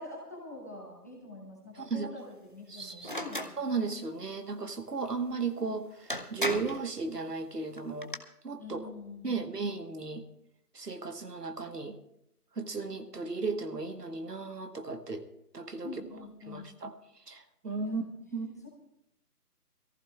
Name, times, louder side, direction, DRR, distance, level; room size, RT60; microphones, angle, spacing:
voice 1, 0.0-3.5 8.6-9.4 15.8-16.7 17.8-18.7, left 2 dB, 10° left, -3 dB, 0.9 m, -45 dB
voice 2, 1.8-2.1 2.7-3.1 3.6-8.1 8.4-8.9 9.2-10.2 10.7-12.0 12.6-15.3 15.5-15.9 16.5-16.9 17.3-18.0 18.3-18.5, right 4 dB, 80° right, 8 dB, 1.5 m, -35 dB
sound 1, 3.0-3.5 5.6-5.7 6.1-6.8 7.8-8.2, equal, 35° left, 0.5 m, -34 dB
23.5 x 14.5 x 2.4 m, 0.78 s
figure-of-eight pair, 155°, 47 cm